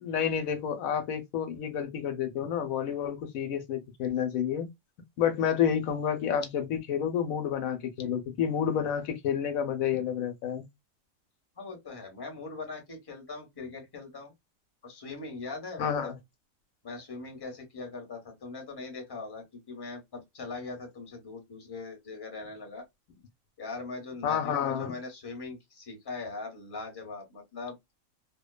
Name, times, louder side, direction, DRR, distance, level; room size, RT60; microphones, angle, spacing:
voice 1, 0.0-4.7 5.2-10.6 15.8-16.2 24.2-24.9, left 8 dB, 85° left, 1.0 m, -29 dB
voice 2, 11.6-14.3 14.8-16.1 16.8-22.8 23.6-27.8, left 3 dB, 20° left, 0.8 m, -41 dB
2.6 x 2.2 x 2.2 m
omnidirectional pair, 1.4 m